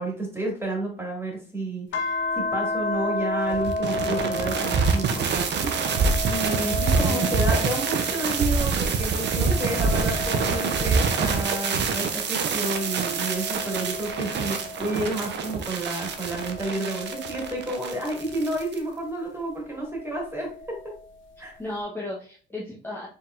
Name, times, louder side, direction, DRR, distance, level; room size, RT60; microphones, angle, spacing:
voice 1, 0.0-20.8 21.4-21.5, right 2 dB, 10° right, -1 dB, 2.2 m, -31 dB
sound 1, 1.9-8.6 9.1-12.0 12.6-15.4 16.1-18.6 19.9-21.0, left 2 dB, 70° left, 0.7 m, -33 dB
sound 2, 3.5-18.8, right 5 dB, 60° right, 0.7 m, -26 dB
voice 2, 6.6-7.4 9.3-9.7 21.6-23.1, left 1 dB, 10° left, -4 dB, 1.0 m, -34 dB
4.7 x 3.6 x 2.5 m, 0.41 s
cardioid pair, 90°, 20 cm